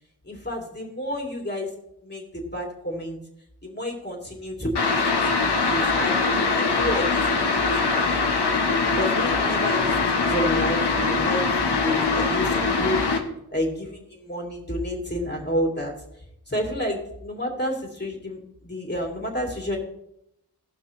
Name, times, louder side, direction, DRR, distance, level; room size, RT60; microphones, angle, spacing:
voice 1, 0.2-1.7 2.0-3.2 3.6-5.0 5.4-8.2 9.0-13.0 13.5-15.9 16.5-19.8, equal, 25° left, 0 dB, 2.9 m, -30 dB
sound 1, 4.7-13.2, left 4 dB, 85° left, 1.3 m, -22 dB
17.5 x 6.0 x 3.2 m, 0.78 s
wide cardioid pair, 60°, 39 cm